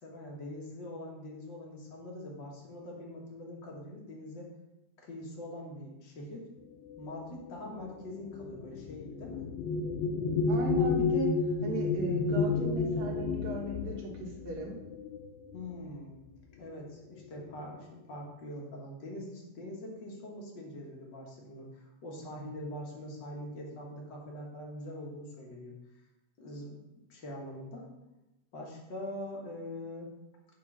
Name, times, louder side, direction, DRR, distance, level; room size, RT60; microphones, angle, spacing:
voice 1, 0.0-4.5 5.0-6.5 7.0-9.5 15.5-16.1 16.6-25.7 26.4-26.8 27.1-27.9 28.5-30.1, left 1 dB, 45° left, -2 dB, 1.6 m, -43 dB
sound 1, 6.9-15.8 16.7-16.9 17.2-17.8, left 4 dB, 85° left, 1.6 m, -32 dB
voice 2, 10.5-11.3 11.6-14.7, right 2 dB, 60° right, -1 dB, 2.5 m, -36 dB
8.5 x 3.8 x 6.1 m, 0.96 s
omnidirectional pair, 3.9 m